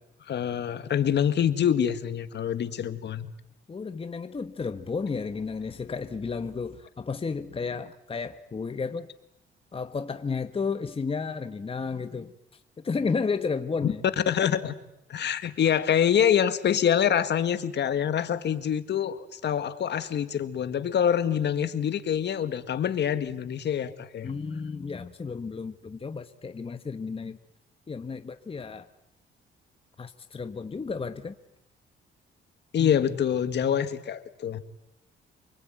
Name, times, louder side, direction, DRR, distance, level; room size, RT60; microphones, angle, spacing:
voice 1, 0.3-3.3 13.8-13.9 14.3-14.7 15.1-24.3 32.7-34.6, left 9 dB, 60° left, 11 dB, 1.8 m, -25 dB
voice 2, 3.7-9.1 9.7-12.3 12.8-14.0 24.2-27.4 27.9-28.9 30.0-31.4 32.8-33.0, left 5 dB, 30° left, 9 dB, 1.2 m, -32 dB
28.0 x 20.5 x 9.1 m, 0.85 s
cardioid pair, 90°, 20 cm